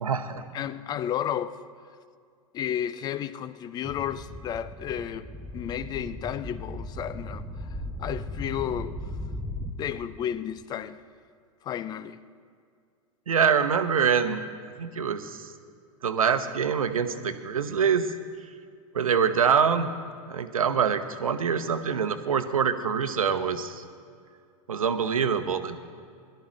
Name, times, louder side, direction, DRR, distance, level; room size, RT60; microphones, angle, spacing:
voice 1, 0.0-0.4 13.3-14.4 14.8-15.4 16.0-18.1 18.9-19.9 20.3-23.8 24.7-25.8, right 7 dB, 70° right, 1.0 m, -25 dB
voice 2, 0.5-1.6 2.5-5.3 5.5-8.9 9.7-11.0 11.6-12.2, left 10 dB, 20° left, 0.4 m, -32 dB
sound 1, 3.8-9.7, equal, 5° right, 1.0 m, -37 dB
21.5 x 12.5 x 3.1 m
figure-of-eight pair, 95°, 19 cm